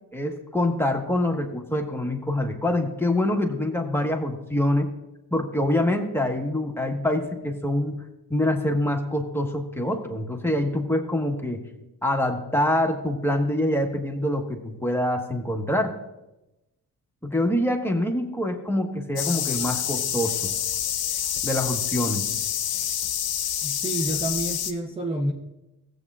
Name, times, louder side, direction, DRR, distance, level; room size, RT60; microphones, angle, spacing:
voice 1, 0.1-4.9 5.3-8.0 8.3-11.6 12.0-15.9 17.2-20.5 21.4-22.3, left 1 dB, 5° left, 1 dB, 1.4 m, -25 dB
sound 1, 19.2-24.7, left 10 dB, 80° left, 0.7 m, -27 dB
voice 2, 23.6-25.3, right 1 dB, 15° right, -1 dB, 0.9 m, -28 dB
15.0 x 8.0 x 2.5 m, 0.96 s
cardioid pair, 70°, 36 cm